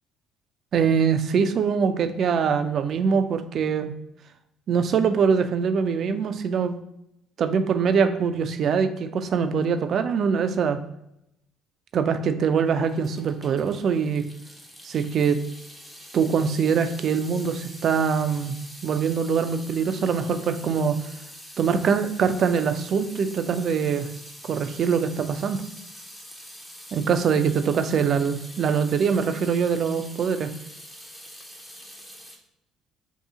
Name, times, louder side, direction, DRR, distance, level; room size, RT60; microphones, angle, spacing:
voice 1, 0.7-3.9 4.7-6.7 7.4-10.8 11.9-14.3 14.8-15.4 16.1-21.0 21.6-24.1 24.4-25.6 26.9-30.5, right 6 dB, 55° right, 10 dB, 0.3 m, -23 dB
Water tap faucet / Sink (filling or washing) / Drip, 12.8-32.4, equal, 5° left, 0.6 m, -45 dB
2.7 x 2.7 x 3.6 m, 0.81 s
supercardioid pair, 85°, 0 cm